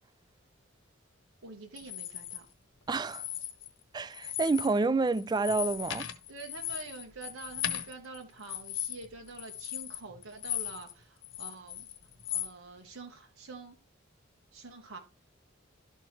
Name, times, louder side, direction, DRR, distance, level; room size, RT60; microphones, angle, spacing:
voice 1, 1.4-2.5 6.3-11.9 12.3-13.8 14.5-15.0, right 3 dB, 90° right, 1.1 m, -46 dB
sound 1, 1.8-2.4 3.0-3.8 4.1-4.8 5.1-10.9 11.2-12.5, left 11 dB, 65° left, 1.0 m, -37 dB
voice 2, 2.9-3.2 3.9-6.1, right 3 dB, 20° right, 0.3 m, -28 dB
12.0 x 4.5 x 3.2 m
head